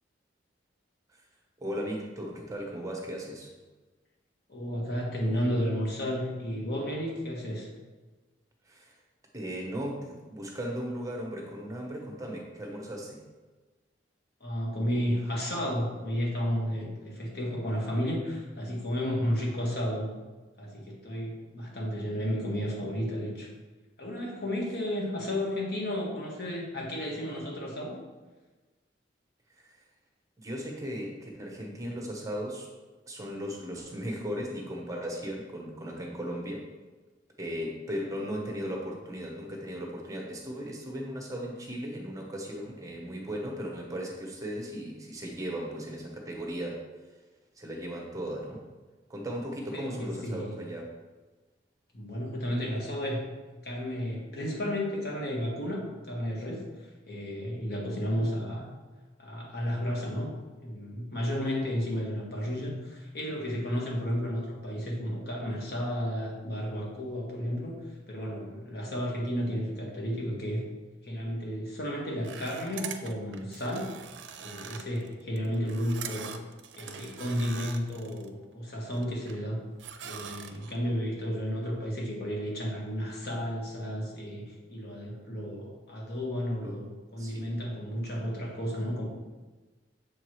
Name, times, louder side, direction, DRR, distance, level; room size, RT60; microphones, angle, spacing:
voice 1, 1.6-3.5 8.7-9.0 9.3-13.2 29.6-29.8 30.4-32.7 33.1-36.7 37.4-46.8 47.6-48.6 49.1-50.9 86.6-86.8 87.2-87.5, equal, 20° right, 0 dB, 0.9 m, -37 dB
voice 2, 4.5-7.7 14.4-20.1 20.6-23.5 24.0-28.0 49.7-50.5 51.9-53.3 53.6-58.6 59.2-60.3 60.6-70.6 71.0-73.9 74.4-76.3 76.7-79.6 80.0-86.8 87.1-89.0, equal, 55° left, -2 dB, 1.6 m, -32 dB
sound 1, 72.2-78.3 78.7-79.5 79.8-80.8, right 7 dB, 75° right, 0.5 m, -43 dB
6.9 x 4.8 x 3.1 m, 1.3 s
head